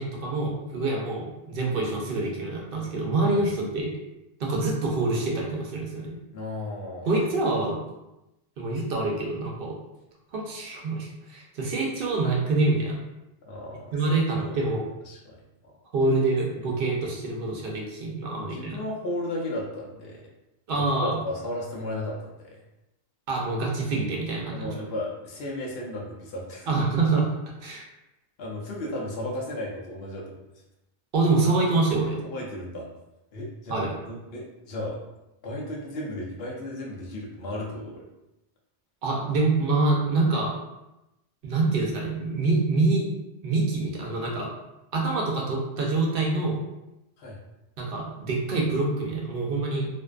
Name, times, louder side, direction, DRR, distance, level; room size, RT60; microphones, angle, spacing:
voice 1, 0.0-3.9 4.4-6.2 7.1-7.8 8.6-9.8 10.3-13.0 13.9-14.8 15.9-18.8 20.7-21.2 23.3-24.7 26.7-27.3 27.6-27.8 31.1-32.2 33.7-33.9 39.0-40.5 41.4-43.1 43.4-44.5 44.9-46.6 47.8-49.9, right 3 dB, 65° right, -1 dB, 0.7 m, -26 dB
voice 2, 6.3-7.1 13.4-14.6 15.1-15.7 16.0-16.1 16.6-16.7 18.3-20.2 20.8-22.6 24.5-26.7 28.4-30.3 32.2-32.9 33.3-35.0 35.4-38.0 47.2-47.4, left 1 dB, 75° left, -3 dB, 0.8 m, -35 dB
2.5 x 2.2 x 2.3 m, 0.94 s
omnidirectional pair, 1.0 m